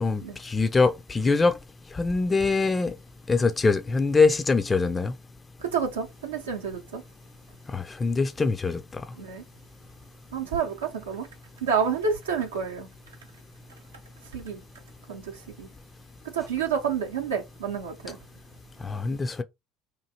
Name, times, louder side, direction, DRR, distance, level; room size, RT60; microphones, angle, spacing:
voice 1, 0.0-1.6 1.9-2.9 3.3-5.1 7.7-9.0 18.8-19.4, left 4 dB, 25° left, 0.3 m, -23 dB
voice 2, 5.6-7.0 9.2-9.4 10.3-11.3 11.6-12.9 14.3-14.6 15.1-15.3 15.6-15.7 16.2-18.2, right 6 dB, 90° right, 0.6 m, -29 dB
3.0 x 2.4 x 2.8 m
hypercardioid pair, 65°, 0 cm